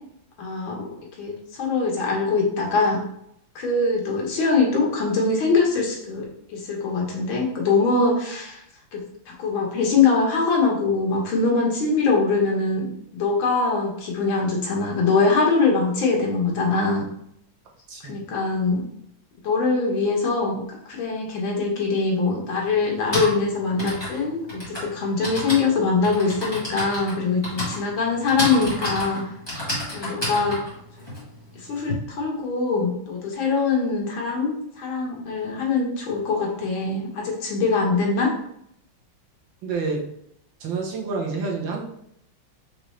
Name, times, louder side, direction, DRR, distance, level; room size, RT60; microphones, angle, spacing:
voice 1, 0.4-3.0 3.6-8.6 8.9-17.0 18.1-18.8 19.4-29.2 29.9-30.6 31.6-38.3, left 4 dB, 85° left, -1 dB, 1.9 m, -23 dB
Typing, 21.8-21.9 22.8-31.9, left 1 dB, 15° left, 1.7 m, -31 dB
voice 2, 39.6-40.0 40.6-41.9, right 4 dB, 75° right, -1 dB, 1.7 m, -28 dB
5.2 x 3.1 x 3.2 m, 0.72 s
omnidirectional pair, 2.1 m